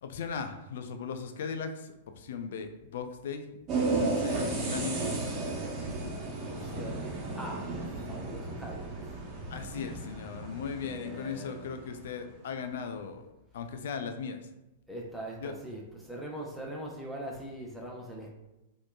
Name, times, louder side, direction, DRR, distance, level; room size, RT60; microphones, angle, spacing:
voice 1, 0.0-3.5 3.7-5.3 6.0-6.1 9.5-13.3 13.5-14.5 15.4-15.5, left 6 dB, 60° left, 7 dB, 0.4 m, -38 dB
sound 1, 3.7-12.1, right 3 dB, 30° right, 1.0 m, -34 dB
voice 2, 6.5-7.1 7.4-9.1 10.8-11.7 14.9-18.3, right 1 dB, ahead, -3 dB, 0.7 m, -42 dB
4.1 x 3.0 x 2.3 m, 0.96 s
figure-of-eight pair, 100°, 0 cm